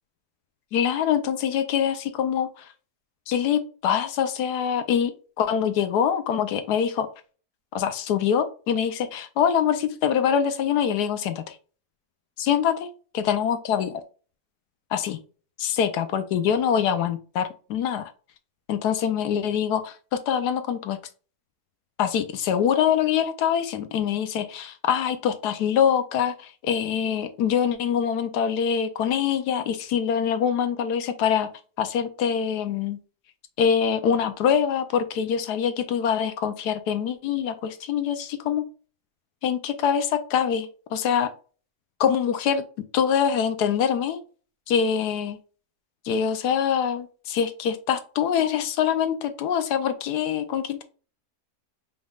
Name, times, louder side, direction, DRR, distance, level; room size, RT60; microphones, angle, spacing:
voice 1, 0.7-2.7 3.3-5.1 5.4-7.1 7.7-11.6 12.4-13.9 14.9-15.2 15.6-18.1 18.7-21.0 22.0-31.5 31.8-33.0 33.6-38.6 39.4-41.3 42.0-42.6 42.9-44.2 44.7-45.4 46.0-50.8, left 8 dB, 75° left, 10 dB, 1.2 m, -24 dB
5.2 x 3.5 x 2.3 m, 0.37 s
omnidirectional pair, 1.8 m